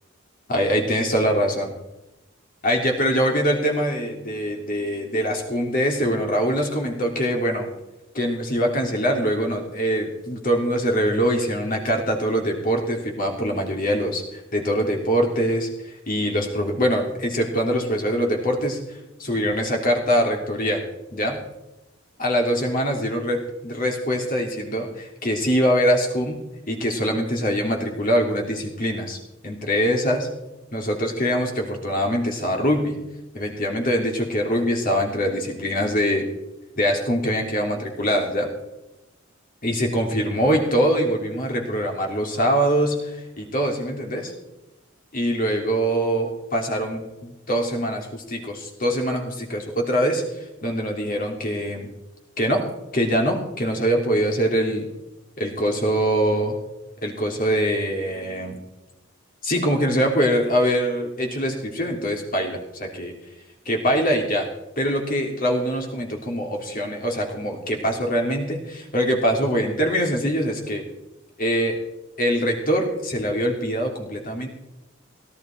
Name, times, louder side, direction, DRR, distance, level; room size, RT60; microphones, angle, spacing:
voice 1, 0.5-1.7 2.6-7.7 8.1-18.8 19.2-20.8 21.1-21.4 22.2-26.4 26.7-29.2 29.4-30.3 30.7-33.0 33.3-36.2 36.8-38.5 39.6-44.3 45.1-50.2 50.6-51.9 52.4-52.7 52.9-54.9 55.4-56.5 57.0-58.6 59.4-63.1 63.6-64.5 64.8-70.8 71.4-71.8 72.2-74.5, equal, 45° left, 2 dB, 3.1 m, -23 dB
17.5 x 12.5 x 4.5 m, 0.96 s
head